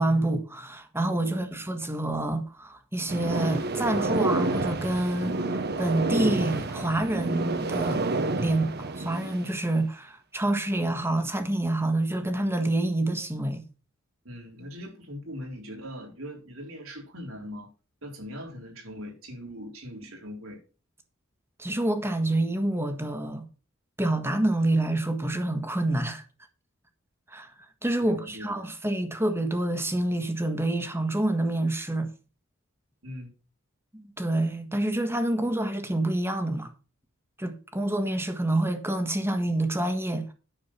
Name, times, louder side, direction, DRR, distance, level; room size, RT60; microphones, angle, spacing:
voice 1, 0.0-8.1 8.4-13.6 21.6-23.4 24.0-26.2 27.3-27.5 27.8-32.1 33.9-36.7 37.4-40.3, right 1 dB, 10° right, 1.5 m, -27 dB
voice 2, 1.2-1.7 14.2-17.7 18.0-20.6 28.0-28.6 33.0-33.3, equal, 90° right, 4.1 m, -41 dB
sound 1, 3.1-9.5, right 3 dB, 50° right, 1.1 m, -29 dB
10.0 x 6.8 x 5.8 m
head